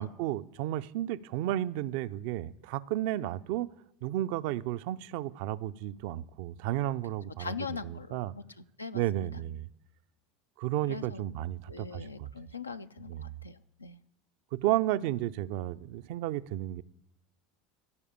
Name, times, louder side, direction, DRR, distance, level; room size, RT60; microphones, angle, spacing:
voice 1, 0.0-3.7 4.0-8.3 8.9-9.7 10.6-12.3 13.1-13.4 14.5-16.8, right 14 dB, 60° right, 0.4 m, -33 dB
voice 2, 7.4-9.4 10.9-11.2 11.7-14.0, left 4 dB, 90° left, 0.4 m, -41 dB
14.0 x 4.9 x 8.7 m
figure-of-eight pair, 75°, 0 cm